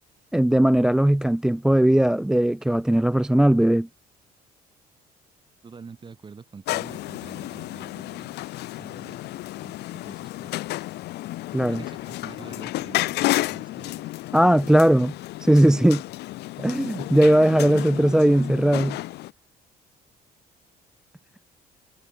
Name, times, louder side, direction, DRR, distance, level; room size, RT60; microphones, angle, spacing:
voice 1, 0.3-3.9 11.5-11.8 14.3-15.1 15.4-16.0 16.6-19.0, right 1 dB, 5° right, 0.4 m, -18 dB
voice 2, 5.6-8.4 8.7-10.5 11.5-14.1 17.6-17.8, right 5 dB, 30° right, 5.1 m, -46 dB
sound 1, 6.7-19.3, left 17 dB, 80° left, 1.4 m, -32 dB
cardioid pair, 110°, 17 cm